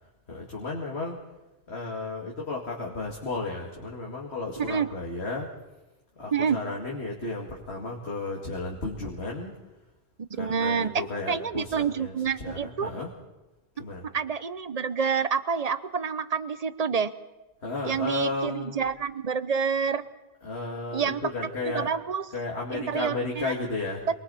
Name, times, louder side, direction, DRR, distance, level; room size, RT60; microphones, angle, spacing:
voice 1, 0.3-1.2 1.7-5.5 6.2-9.5 10.4-13.1 13.8-14.0 17.6-18.8 20.4-21.9 22.3-24.1, left 3 dB, 75° left, -2 dB, 2.7 m, -33 dB
voice 2, 4.6-4.9 6.3-6.6 10.4-12.9 14.1-17.1 17.8-20.0 20.9-21.2 21.6-22.2 22.7-23.5, right 6 dB, 40° right, 13 dB, 0.9 m, -28 dB
28.0 x 22.0 x 4.2 m, 1.1 s
omnidirectional pair, 1.1 m